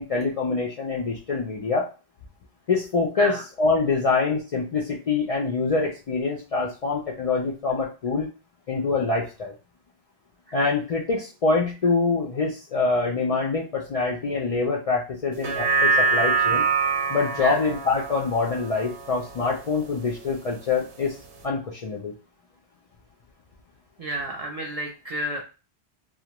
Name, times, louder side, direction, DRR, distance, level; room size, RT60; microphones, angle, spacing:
voice 1, 0.0-1.9 2.7-8.3 8.7-9.5 10.5-16.6 17.1-21.1 21.4-22.1, left 4 dB, 55° left, -3 dB, 0.4 m, -25 dB
Tanpura note C sharp, 15.3-19.9 20.3-20.4, right 4 dB, 70° right, 0.8 m, -25 dB
voice 2, 24.0-25.4, right 1 dB, 50° right, -1 dB, 0.4 m, -31 dB
2.4 x 2.0 x 2.9 m, 0.32 s
omnidirectional pair, 1.1 m